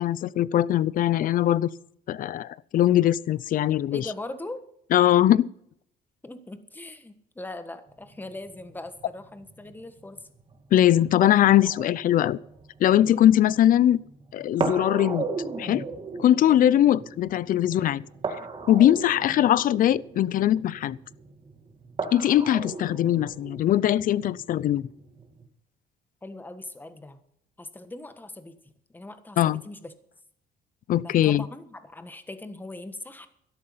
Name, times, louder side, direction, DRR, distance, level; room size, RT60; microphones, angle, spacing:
voice 1, 0.0-1.7 2.1-4.1 4.9-5.5 10.7-12.4 12.8-14.0 14.3-15.2 15.6-15.9 16.2-18.0 18.7-21.0 22.1-24.8 29.4-29.6 30.9-31.4, left 12 dB, 55° left, 0.5 m, -21 dB
voice 2, 3.9-4.6 6.2-10.3 12.9-13.3 17.7-18.0 26.2-27.2 27.6-28.5 28.9-29.9 31.0-33.3, left 2 dB, 10° left, 1.4 m, -40 dB
sound 1, 7.9-25.4, right 4 dB, 30° right, 2.2 m, -37 dB
13.0 x 11.0 x 5.7 m
cardioid pair, 110°, 17 cm